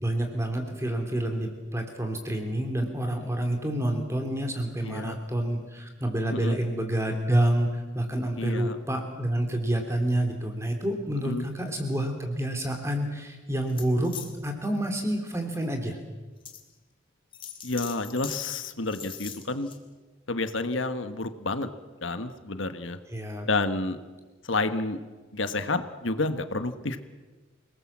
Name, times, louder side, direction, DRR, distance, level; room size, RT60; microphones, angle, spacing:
voice 1, 0.0-14.2 14.4-16.0 23.1-23.5, right 1 dB, 15° right, 4 dB, 3.2 m, -28 dB
voice 2, 4.8-5.1 6.3-6.6 8.4-8.8 11.2-11.4 17.6-19.7 20.3-21.7 22.0-23.0 23.5-24.0 24.4-25.0 25.3-27.0, left 3 dB, 75° left, 9 dB, 1.5 m, -29 dB
sound 1, 13.7-14.3 14.8-15.0 15.6-15.7 16.4-16.6 17.3-18.4 18.8-19.8, left 8 dB, 25° left, 2.4 m, -41 dB
27.5 x 20.0 x 7.4 m, 1.3 s
head